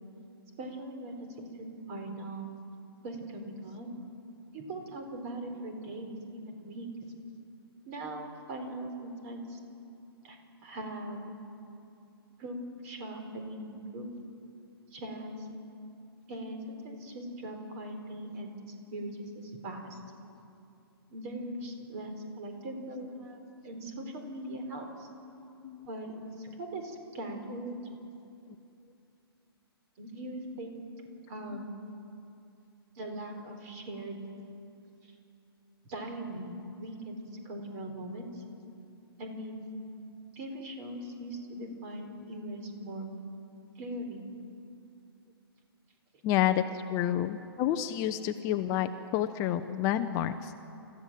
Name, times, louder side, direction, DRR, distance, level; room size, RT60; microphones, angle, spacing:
voice 1, 0.6-2.5 3.0-3.9 4.5-6.9 7.8-9.6 10.2-11.3 12.4-14.1 14.9-15.5 16.3-20.0 21.1-23.4 23.6-25.1 25.9-27.7 30.0-30.9 31.3-31.7 33.0-34.2 35.0-35.1 35.8-38.4 39.2-39.6 40.3-43.1 43.8-44.2, right 1 dB, 35° right, 4 dB, 4.2 m, -40 dB
voice 2, 46.2-50.5, left 11 dB, 25° left, 9 dB, 0.7 m, -29 dB
29.5 x 14.5 x 7.6 m, 2.6 s
figure-of-eight pair, 120°, 13 cm